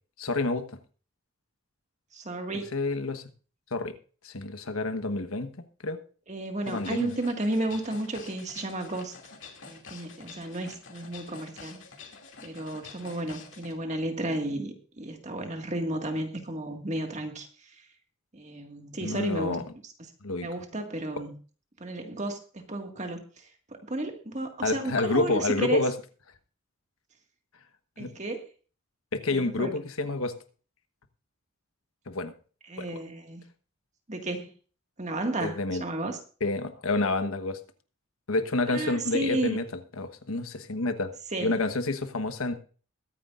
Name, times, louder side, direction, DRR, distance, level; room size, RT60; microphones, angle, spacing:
voice 1, 0.2-0.7 2.5-3.2 3.7-4.0 4.2-5.6 5.8-6.0 6.7-7.1 19.0-19.6 20.2-20.5 24.6-25.9 28.0-28.1 29.1-30.4 32.1-32.3 32.8-32.9 35.4-35.8 36.4-37.6 38.3-39.6 40.0-41.1 41.4-42.6, left 2 dB, 80° left, 10 dB, 1.2 m, -28 dB
voice 2, 2.1-2.7 6.3-9.1 9.6-11.8 12.4-17.8 18.3-19.6 19.8-19.9 20.4-21.4 21.8-23.5 23.9-25.8 28.0-28.4 29.3-29.7 32.7-33.4 34.1-34.5 35.0-36.2 38.7-39.6 41.3-41.5, right 1 dB, 35° right, 4 dB, 1.9 m, -33 dB
sound 1, 6.6-13.7, left 5 dB, 60° left, 2.4 m, -48 dB
22.0 x 9.7 x 2.5 m, 0.39 s
head